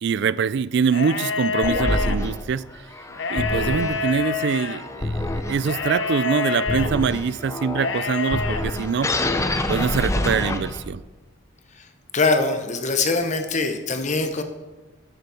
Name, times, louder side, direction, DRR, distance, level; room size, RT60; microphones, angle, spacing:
voice 1, 0.0-2.6 3.3-9.1 9.7-11.0, right 6 dB, 55° right, 0.3 m, -24 dB
sound 1, 0.9-2.2 3.1-4.8 5.6-6.9 7.7-8.6, left 5 dB, 60° left, 0.8 m, -27 dB
sound 2, 1.6-11.1, left 1 dB, 15° left, 0.6 m, -27 dB
voice 2, 12.1-14.4, left 3 dB, 35° left, 1.0 m, -22 dB
10.5 x 6.6 x 7.0 m
head